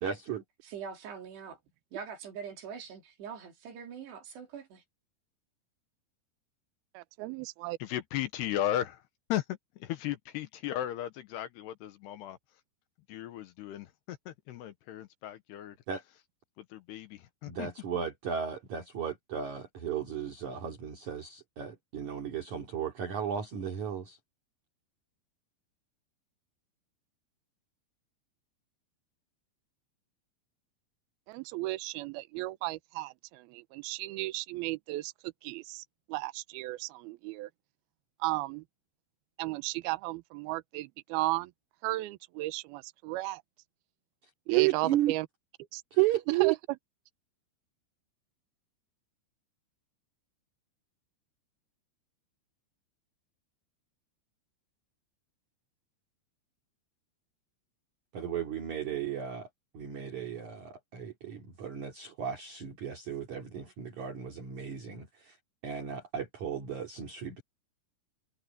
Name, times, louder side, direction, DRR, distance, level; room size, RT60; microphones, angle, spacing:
voice 1, 0.0-0.4 15.9-16.0 17.5-24.2 44.5-45.1 45.9-46.5 58.1-59.5 59.7-65.3 65.6-67.4, right 11 dB, 45° right, 3.6 m, -33 dB
voice 2, 0.6-1.6 1.9-4.8, right 6 dB, 65° right, 5.0 m, -43 dB
voice 3, 6.9-7.8 31.3-35.1 35.4-35.8 36.1-37.5 38.2-38.6 39.4-41.5 41.8-43.4 44.5-45.3 45.7-45.8 46.4-46.6, right 19 dB, 85° right, 2.1 m, -35 dB
voice 4, 7.8-9.0 9.3-12.4 13.1-15.7 16.7-17.7, left 12 dB, 75° left, 2.8 m, -36 dB
omnidirectional pair, 5.4 m